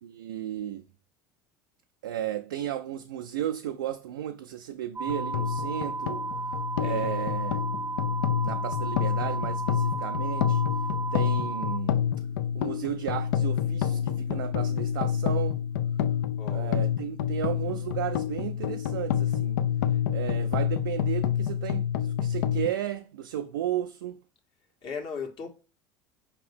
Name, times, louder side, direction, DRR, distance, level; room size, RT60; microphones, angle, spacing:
voice 1, 0.0-0.8 2.0-6.3 6.8-7.6 8.4-10.6 11.1-12.0 12.5-15.6 16.5-19.6 20.1-24.2, right 11 dB, 85° right, 0.4 m, -34 dB
sound 1, 5.0-11.8, right 4 dB, 20° right, 0.6 m, -34 dB
sound 2, 5.1-22.7, left 9 dB, 80° left, 0.4 m, -28 dB
voice 2, 6.8-7.3 16.4-16.8 19.8-20.0 24.8-25.5, left 5 dB, 50° left, 1.4 m, -38 dB
5.1 x 2.8 x 3.4 m
hypercardioid pair, 75°, 11 cm